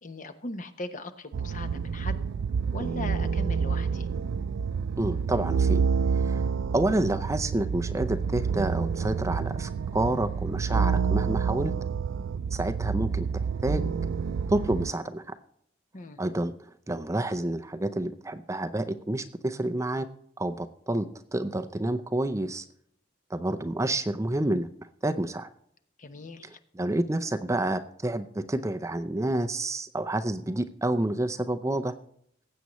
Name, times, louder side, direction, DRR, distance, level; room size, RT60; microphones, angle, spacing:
voice 1, 0.0-2.2 2.7-4.1 15.9-16.2 26.0-26.6, left 2 dB, 40° left, 9 dB, 0.9 m, -39 dB
sound 1, 1.3-14.9, right 6 dB, 80° right, 0.4 m, -28 dB
voice 2, 5.0-6.5 6.7-11.7 12.5-13.3 13.6-13.9 14.5-15.2 16.2-16.5 16.9-20.1 20.4-22.6 23.3-24.7 25.0-25.5 26.7-31.9, right 1 dB, 15° right, 9 dB, 0.5 m, -29 dB
19.0 x 8.2 x 3.1 m, 0.68 s
head